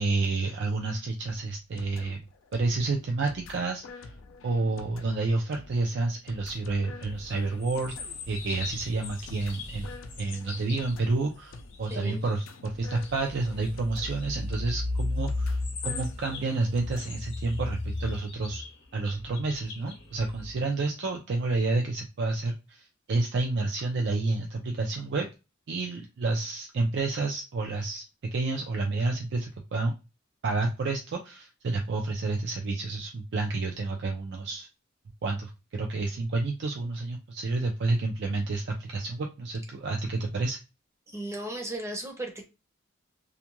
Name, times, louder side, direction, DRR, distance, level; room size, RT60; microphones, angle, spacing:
voice 1, 0.0-2.2 2.5-4.1 4.4-7.9 8.3-9.9 10.2-18.6 18.9-25.3 25.7-28.0 28.3-29.9 30.4-34.7 35.2-40.6, right 3 dB, 60° right, 2 dB, 0.4 m, -29 dB
sound 1, 1.2-17.2, left 3 dB, 85° left, 0.4 m, -48 dB
sound 2, 7.0-12.5 12.8-20.5, left 2 dB, 65° left, 0.8 m, -36 dB
voice 2, 11.9-12.2 41.1-42.4, right 1 dB, 15° right, 2 dB, 0.6 m, -36 dB
2.4 x 2.2 x 2.9 m, 0.27 s
head